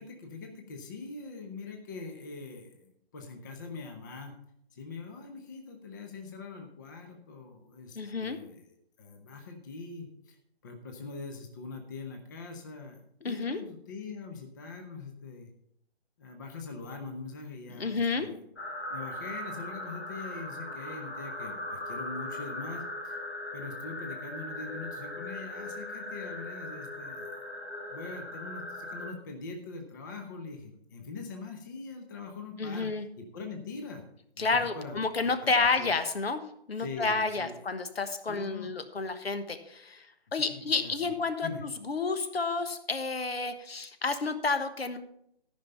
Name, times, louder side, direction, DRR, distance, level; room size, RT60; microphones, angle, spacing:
voice 1, 0.0-4.3 4.7-8.6 9.0-10.4 10.6-13.0 13.2-15.5 16.2-18.4 18.9-23.2 23.5-27.3 27.9-34.0 34.4-35.5 35.8-35.9 36.8-37.7 38.3-38.7 40.3-41.1 41.4-41.6, left 4 dB, 20° left, 4 dB, 0.7 m, -43 dB
voice 2, 7.9-8.4 13.2-13.6 17.7-18.3 32.6-33.0 34.4-36.4 36.7-40.1 40.3-41.5 41.9-45.0, left 4 dB, 65° left, 10 dB, 1.3 m, -30 dB
sound 1, 18.6-29.1, left 1 dB, 90° left, 2.8 m, -39 dB
13.5 x 5.6 x 5.5 m, 0.73 s
figure-of-eight pair, 150°, 32 cm